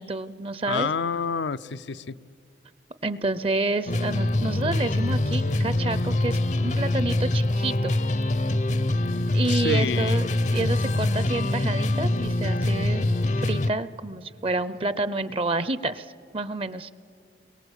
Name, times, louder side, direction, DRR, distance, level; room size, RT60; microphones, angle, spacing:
voice 1, 0.0-0.9 3.0-8.0 9.3-13.0 13.4-16.9, right 2 dB, 30° right, 15 dB, 0.6 m, -29 dB
voice 2, 0.7-2.2 9.5-10.2, left 5 dB, 85° left, 16 dB, 0.6 m, -28 dB
sound 1, 3.9-13.7, left 1 dB, 40° left, 0.6 m, -24 dB
29.5 x 22.5 x 8.2 m, 2.3 s
head